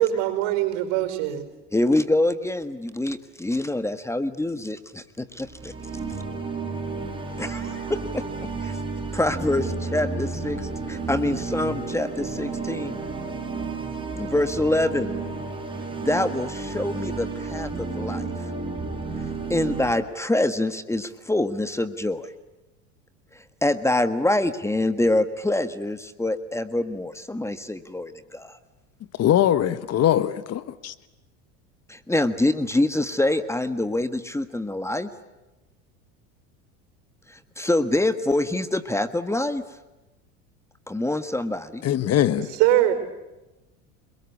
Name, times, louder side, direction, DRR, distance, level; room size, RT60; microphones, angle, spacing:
voice 1, 0.0-1.5 42.6-42.9, right 12 dB, 70° right, 5.1 m, -21 dB
voice 2, 1.7-5.7 7.4-8.2 8.6-8.8 9.1-13.0 14.1-15.1 16.0-18.3 19.5-22.3 23.3-28.6 31.9-35.1 37.3-39.6 40.9-41.8, left 1 dB, 5° left, 1.5 m, -25 dB
sound 1, 5.4-20.0, right 4 dB, 15° right, 7.7 m, -32 dB
voice 3, 29.2-30.9 41.8-42.5, left 11 dB, 45° left, 1.5 m, -21 dB
29.5 x 22.0 x 8.5 m
supercardioid pair, 100°, 36 cm